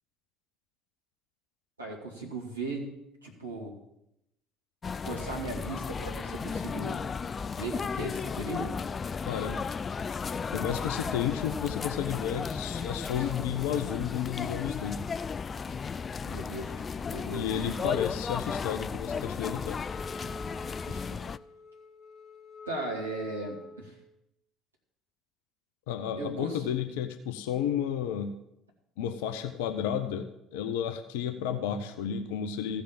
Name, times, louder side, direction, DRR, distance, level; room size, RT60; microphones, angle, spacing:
voice 1, 1.8-2.9 3.2-3.7 5.0-7.0 7.4-8.8 13.2-13.3 16.2-16.7 17.1-17.5 20.9-21.1 22.7-23.9 26.2-26.6, right 2 dB, 85° right, -2 dB, 2.1 m, -37 dB
sound 1, 4.8-21.4, left 5 dB, 30° left, 0.3 m, -35 dB
voice 2, 9.3-9.6 10.5-15.0 17.3-19.8 25.9-28.3 29.0-32.8, left 9 dB, 65° left, 8 dB, 0.6 m, -32 dB
Wind instrument woodwind instrument, 19.8-24.0, left 2 dB, 5° right, 2.2 m, -46 dB
15.0 x 5.2 x 7.2 m, 0.82 s
figure-of-eight pair, 60°, 0 cm